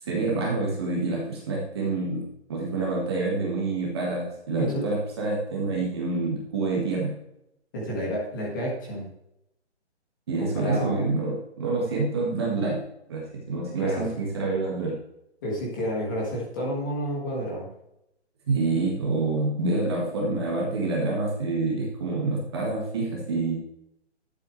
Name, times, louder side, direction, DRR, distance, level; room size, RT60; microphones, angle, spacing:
voice 1, 0.0-7.2 10.3-12.8 13.1-15.0 18.5-23.6, right 3 dB, 20° right, -3 dB, 1.8 m, -27 dB
voice 2, 4.5-4.8 7.7-9.1 10.4-11.1 13.8-14.0 15.4-17.7, equal, 15° left, -3 dB, 1.8 m, -30 dB
11.5 x 8.1 x 3.3 m, 0.83 s
hypercardioid pair, 170°, 35 cm